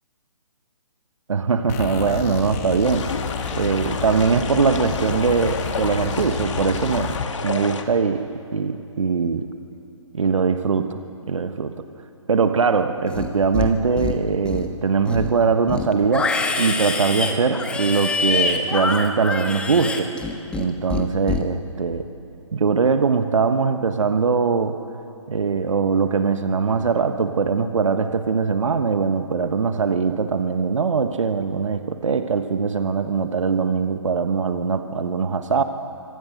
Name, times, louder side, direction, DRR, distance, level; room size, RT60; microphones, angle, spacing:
voice 1, 1.3-3.0 3.5-7.1 7.4-8.3 8.5-9.5 10.1-11.0 11.3-11.7 12.3-16.3 16.6-20.1 20.5-22.0 22.5-24.8 25.3-35.6, right 5 dB, 70° right, 8 dB, 1.3 m, -21 dB
sound 1, 1.7-7.3, left 7 dB, 30° left, 1.8 m, -30 dB
sound 2, 2.8-7.8, left 5 dB, 65° left, 2.1 m, -31 dB
Livestock farm animals working animals, 13.1-13.7 14.0-14.7 15.0-20.6 20.9-21.4, left 4 dB, 5° left, 1.3 m, -25 dB
26.0 x 25.0 x 6.6 m, 2.8 s
figure-of-eight pair, 140°, 17 cm